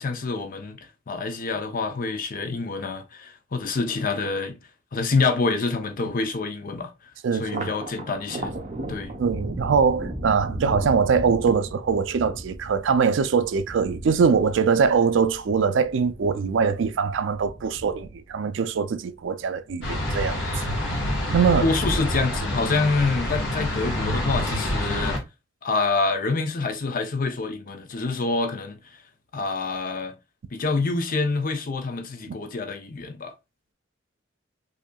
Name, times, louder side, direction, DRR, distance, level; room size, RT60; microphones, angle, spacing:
voice 1, 0.0-4.6 4.9-8.5 8.9-9.1 21.6-25.2 25.6-29.0 29.3-30.1 30.5-33.3, left 3 dB, 45° left, 0.6 m, -27 dB
voice 2, 7.2-7.7 9.2-20.4 20.8-21.1 21.3-21.7, right 6 dB, 65° right, 0.4 m, -22 dB
Thunder, 7.4-20.1 20.5-21.3 21.6-22.5, right 1 dB, 35° right, 0.8 m, -37 dB
sound 1, 19.8-25.2, left 1 dB, 65° left, 1.7 m, -27 dB
5.0 x 2.7 x 2.3 m
head